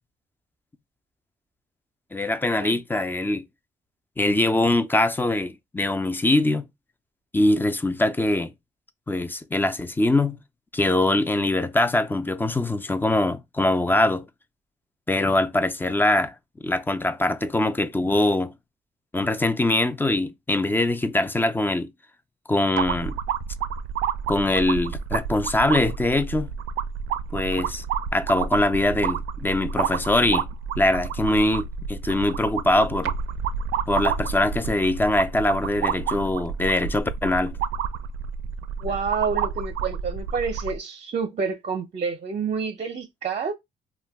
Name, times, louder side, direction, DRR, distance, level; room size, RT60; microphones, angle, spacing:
voice 1, 2.1-3.4 4.2-6.6 7.3-8.5 9.1-10.4 10.7-14.2 15.1-16.3 16.6-18.5 19.1-21.9 22.5-23.1 24.3-26.5 27.3-27.8 28.1-30.5 30.8-33.1 33.9-37.6, left 2 dB, 10° left, 0.4 m, -23 dB
sound 1, 22.8-40.8, right 7 dB, 80° right, 0.4 m, -30 dB
voice 2, 38.8-43.5, right 5 dB, 35° right, 0.6 m, -28 dB
2.5 x 2.2 x 3.4 m
cardioid pair, 90°, 20 cm